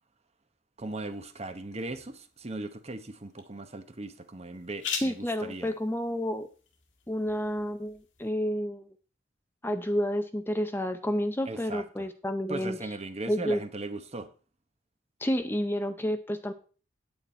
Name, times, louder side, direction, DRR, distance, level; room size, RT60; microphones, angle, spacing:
sound 1, 0.8-8.3, left 7 dB, 85° left, 1.9 m, -44 dB
voice 1, 0.8-5.7 11.5-12.1 12.5-14.3, right 2 dB, 35° right, 1.0 m, -38 dB
voice 2, 5.0-6.5 7.1-8.8 9.6-12.8 13.3-13.6 15.2-16.5, equal, 10° left, 0.6 m, -30 dB
9.2 x 9.2 x 4.3 m
head